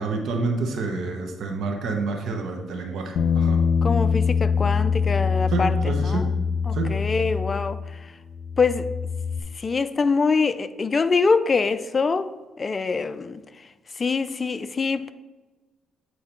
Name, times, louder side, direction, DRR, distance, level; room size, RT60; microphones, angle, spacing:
voice 1, 0.0-3.6 5.5-6.3 6.7-6.9, right 3 dB, 70° right, 1.0 m, -28 dB
Bass guitar, 3.2-7.9 8.2-9.4, left 6 dB, 70° left, 0.9 m, -24 dB
voice 2, 3.8-6.3 6.7-8.1 8.6-8.9 9.5-12.3 12.6-13.7 13.9-15.1, left 4 dB, 35° left, 0.4 m, -24 dB
8.7 x 4.6 x 4.4 m
cardioid pair, 90°, 0 cm